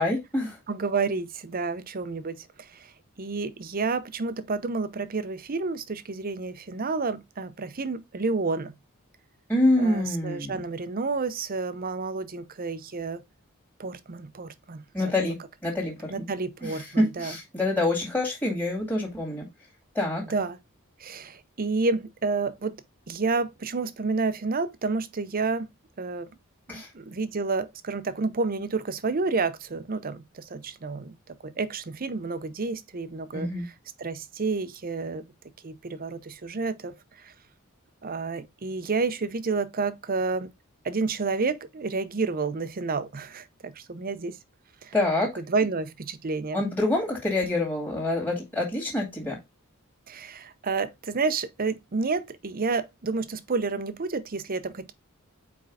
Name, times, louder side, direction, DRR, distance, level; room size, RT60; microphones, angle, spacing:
voice 1, 0.0-0.6 9.5-10.6 14.9-15.3 15.6-16.1 16.6-19.5 20.0-20.2 26.7-26.9 33.3-33.6 44.9-45.3 46.5-49.4, left 1 dB, 10° left, 2.0 m, -26 dB
voice 2, 0.7-2.9 3.2-8.8 9.8-13.2 13.8-14.8 15.2-15.3 16.1-17.4 20.3-20.6 21.0-22.8 23.1-25.7 26.0-26.3 26.7-33.7 34.0-35.3 35.6-37.3 38.0-40.5 40.8-44.4 44.8-44.9 45.4-46.6 50.1-54.9, right 4 dB, 40° right, 0.7 m, -30 dB
4.7 x 4.6 x 4.7 m
head